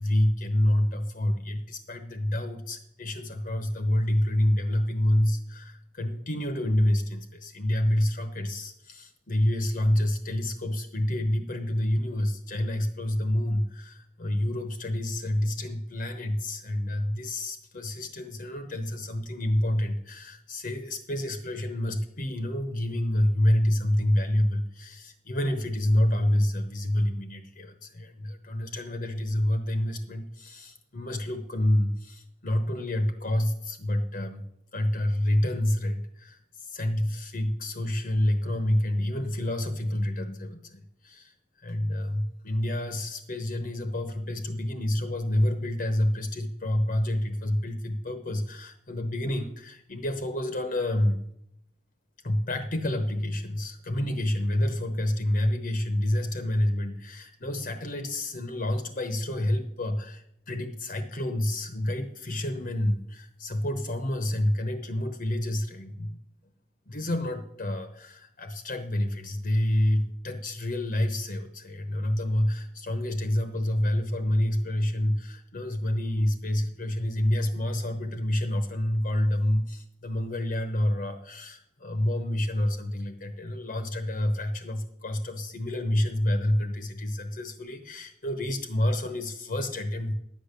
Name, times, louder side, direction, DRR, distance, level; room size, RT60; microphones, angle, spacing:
voice 1, 0.0-34.4 34.7-51.2 52.2-66.2 66.9-90.1, left 1 dB, 50° left, 7 dB, 0.9 m, -28 dB
11.0 x 8.4 x 6.7 m, 0.75 s
head